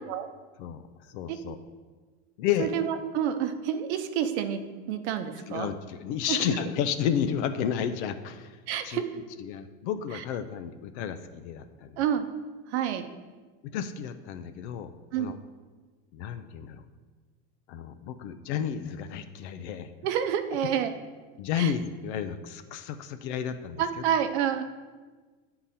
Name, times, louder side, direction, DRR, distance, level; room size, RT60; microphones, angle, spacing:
voice 1, 0.6-1.6 2.4-2.7 5.5-8.6 8.8-9.1 9.4-12.0 13.6-14.9 15.2-15.4 16.1-16.8 17.7-19.9 21.4-24.0, left 8 dB, 80° left, 9 dB, 0.5 m, -32 dB
voice 2, 2.6-4.6 4.9-5.7 6.3-6.4 8.7-9.0 10.1-10.2 12.0-12.3 12.7-13.1 15.1-15.3 20.0-20.9 21.5-21.7 23.8-24.6, right 9 dB, 75° right, 9 dB, 0.7 m, -28 dB
8.6 x 3.9 x 4.1 m, 1.4 s
supercardioid pair, 150°, 34 cm